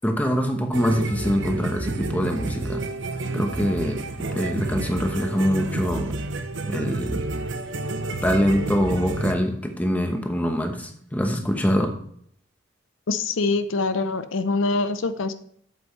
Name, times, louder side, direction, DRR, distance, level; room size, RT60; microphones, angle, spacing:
voice 1, 0.0-2.8 3.3-4.0 4.3-6.1 6.7-7.2 8.2-11.9, equal, 10° left, 3 dB, 1.0 m, -24 dB
sound 1, 0.7-9.3, right 2 dB, 70° right, 0.8 m, -29 dB
voice 2, 13.1-15.3, left 3 dB, 80° left, 11 dB, 0.6 m, -24 dB
8.0 x 7.9 x 3.1 m, 0.64 s
head